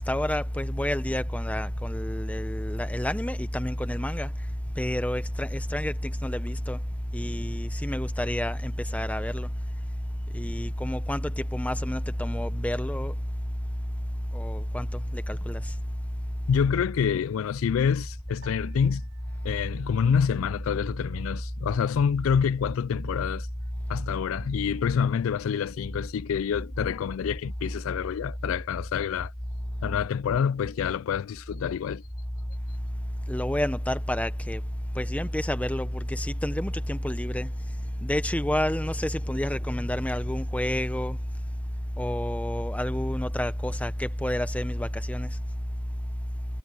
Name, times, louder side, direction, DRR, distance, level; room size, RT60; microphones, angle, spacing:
voice 1, 0.0-4.3 4.8-6.8 7.1-9.5 10.3-13.1 14.3-15.6 33.3-34.6 35.0-37.5 38.0-41.2 42.0-45.3, left 1 dB, 5° left, 0.9 m, -29 dB
voice 2, 16.5-19.0 19.4-23.5 23.9-29.3 29.8-32.0, left 7 dB, 85° left, 0.3 m, -27 dB
Piano, 18.4-20.9, left 1 dB, 65° right, 3.8 m, -56 dB
head